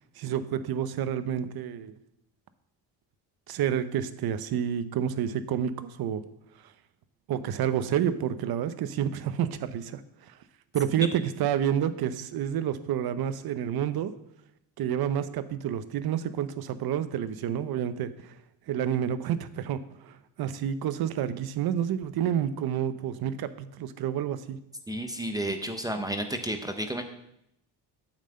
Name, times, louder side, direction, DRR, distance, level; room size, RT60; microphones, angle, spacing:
voice 1, 0.2-1.9 3.5-6.2 7.3-10.3 10.7-14.1 14.8-18.3 18.7-24.6, right 9 dB, 65° right, 12 dB, 0.8 m, -29 dB
voice 2, 24.9-27.0, right 1 dB, 10° right, 6 dB, 0.5 m, -31 dB
9.0 x 5.6 x 7.6 m, 0.80 s
cardioid pair, 170°, 41 cm